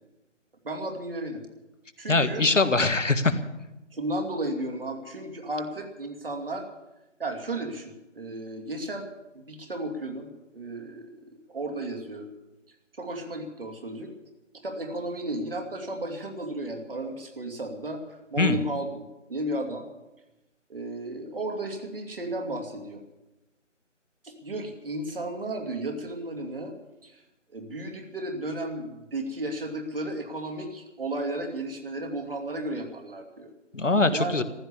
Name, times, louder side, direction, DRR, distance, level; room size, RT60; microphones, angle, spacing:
voice 1, 0.6-1.4 2.0-2.5 3.9-6.7 7.2-9.1 9.3-12.3 13.0-14.1 14.6-19.0 19.3-19.9 20.7-23.0 24.2-26.7 27.0-27.2 27.5-33.5 34.1-34.4, right 1 dB, 50° right, 4 dB, 2.8 m, -34 dB
voice 2, 2.1-3.4 18.4-18.6 33.7-34.4, left 3 dB, 75° left, 9 dB, 1.7 m, -22 dB
15.0 x 13.5 x 7.1 m, 1.0 s
figure-of-eight pair, 160°, 37 cm